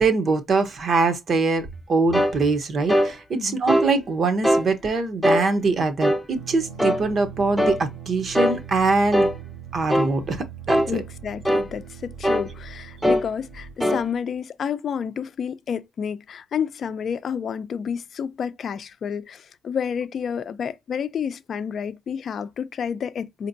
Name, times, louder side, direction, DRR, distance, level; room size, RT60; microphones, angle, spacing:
voice 1, 0.0-9.3 9.7-11.0, right 3 dB, 50° right, 0.9 m, -23 dB
sound 1, 2.1-2.4 2.9-3.1 3.7-3.9 4.4-4.7 5.2-5.5 6.0-6.3 6.8-7.0 7.6-7.8 8.4-8.6 9.1-9.4 9.9-10.1 10.7-10.9 11.5-11.7 12.2-12.5 13.0-13.3 13.8-14.0, equal, ahead, 0.6 m, -20 dB
sound 2, 6.3-13.7, right 8 dB, 70° right, 1.6 m, -40 dB
voice 2, 10.8-23.5, left 7 dB, 55° left, 0.5 m, -30 dB
4.4 x 2.9 x 2.6 m
cardioid pair, 90°, 0 cm